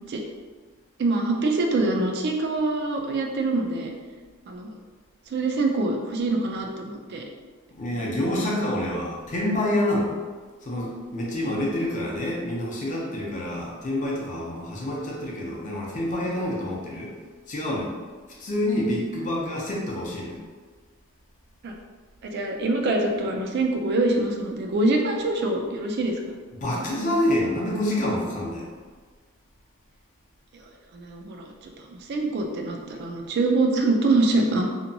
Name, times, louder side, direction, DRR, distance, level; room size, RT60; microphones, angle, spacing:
voice 1, 1.0-3.9 4.5-4.7 5.3-7.2 21.6-21.7 22.2-26.4 30.9-34.7, right 2 dB, 50° right, 2 dB, 0.3 m, -25 dB
voice 2, 7.8-10.1 10.6-17.1 17.5-17.9 18.4-20.4 26.6-28.7, left 1 dB, 35° left, -3 dB, 0.5 m, -27 dB
2.8 x 2.2 x 2.6 m, 1.4 s
head